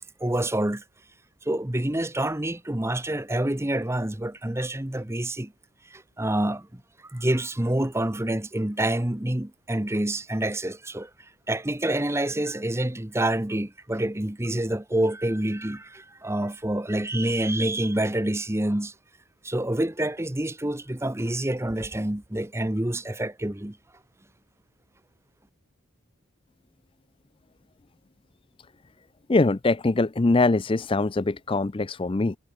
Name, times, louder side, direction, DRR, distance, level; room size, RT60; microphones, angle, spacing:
voice 1, 0.2-0.8 1.4-5.5 5.9-6.8 7.1-11.1 11.5-18.9 19.4-23.8, right 1 dB, 10° right, 0.9 m, -27 dB
voice 2, 29.3-32.4, left 3 dB, 25° left, 0.4 m, -23 dB
head